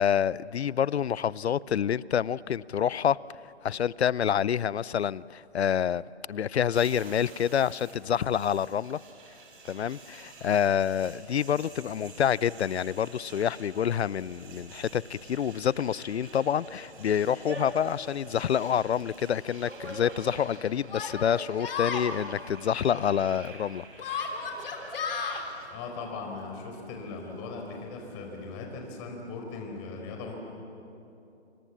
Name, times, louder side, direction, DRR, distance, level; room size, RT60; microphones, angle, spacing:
voice 1, 0.0-3.2 3.6-6.0 6.3-9.0 9.7-24.2, left 9 dB, 70° left, 22 dB, 0.6 m, -27 dB
sound 1, 6.7-25.7, right 5 dB, 50° right, 4.9 m, -51 dB
sound 2, 10.4-28.7, right 1 dB, 85° right, 5.4 m, -49 dB
Yell, 18.6-18.7 19.7-19.8 20.9-22.1 24.0-25.4, left 5 dB, 55° left, 3.4 m, -33 dB
voice 2, 25.7-30.3, left 4 dB, 25° left, 2 dB, 4.5 m, -39 dB
28.0 x 25.5 x 7.3 m, 2.8 s
figure-of-eight pair, 140°, 34 cm